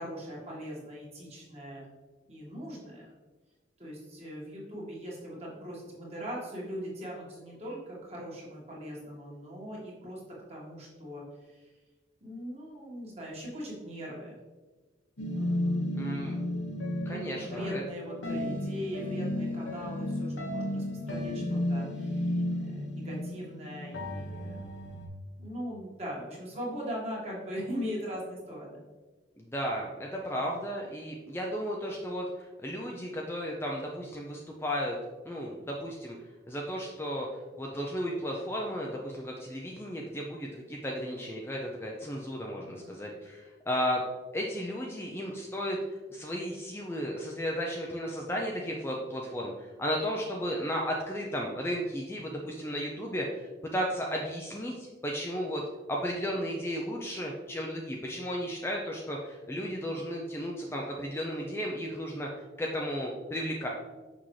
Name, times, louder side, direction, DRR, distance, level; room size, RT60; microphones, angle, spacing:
voice 1, 0.0-1.9 2.3-3.1 3.8-10.2 10.5-11.7 12.2-14.4 15.3-15.9 17.1-24.7 25.4-28.8 42.5-43.0, equal, 35° right, -4 dB, 1.8 m, -40 dB
sound 1, 15.2-25.1, left 1 dB, 85° left, 1.1 m, -33 dB
voice 2, 15.9-16.4 17.1-17.8 29.4-35.0 35.2-36.2 36.5-37.3 37.6-44.0 44.3-45.8 46.1-55.6 55.9-62.3 62.6-63.7, equal, 15° left, -1 dB, 0.5 m, -34 dB
6.1 x 5.7 x 3.2 m, 1.3 s
head